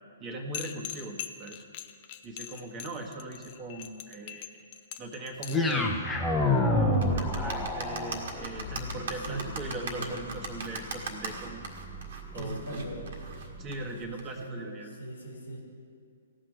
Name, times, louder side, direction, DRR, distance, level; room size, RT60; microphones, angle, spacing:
voice 1, 0.2-1.6 2.2-4.6 5.0-5.9 6.6-11.7 12.3-12.9 13.6-14.9, right 2 dB, 25° right, 0 dB, 1.7 m, -39 dB
sound 1, 0.5-5.7, left 12 dB, 40° left, 0.7 m, -41 dB
sound 2, 5.5-13.7, left 2 dB, 10° left, 1.3 m, -31 dB
sound 3, 6.9-14.5, right 4 dB, 60° right, 1.9 m, -39 dB
voice 2, 8.9-10.2 12.3-13.1 14.0-15.6, right 1 dB, 90° left, -1 dB, 2.7 m, -40 dB
15.5 x 6.2 x 9.3 m, 2.2 s
figure-of-eight pair, 120°, 0 cm